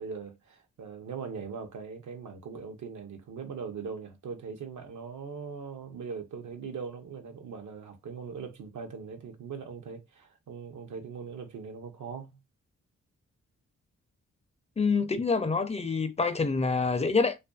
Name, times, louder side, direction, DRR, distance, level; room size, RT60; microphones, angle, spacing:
voice 1, 0.0-12.4, right 5 dB, 70° right, 0.7 m, -40 dB
voice 2, 14.8-17.3, left 4 dB, 20° left, 0.4 m, -26 dB
2.5 x 2.5 x 2.3 m
cardioid pair, 65°, 30 cm